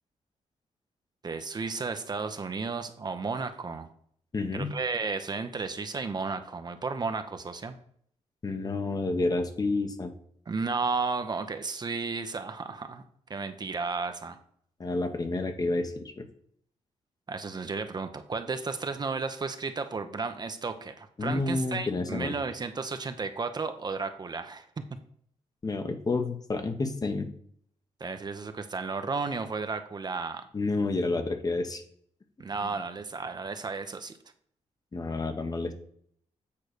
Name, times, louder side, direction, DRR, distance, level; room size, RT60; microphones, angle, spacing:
voice 1, 1.2-3.9 4.5-7.8 10.5-13.0 13.3-14.4 17.3-24.6 28.0-30.5 32.4-34.2, right 4 dB, 35° right, 8 dB, 0.7 m, -33 dB
voice 2, 4.3-4.7 8.4-10.1 14.8-16.3 21.2-22.3 25.6-27.3 30.5-31.8 32.6-32.7 34.9-35.7, left 3 dB, 30° left, 7 dB, 1.0 m, -29 dB
8.5 x 3.2 x 6.5 m, 0.63 s
cardioid pair, 95°, 12 cm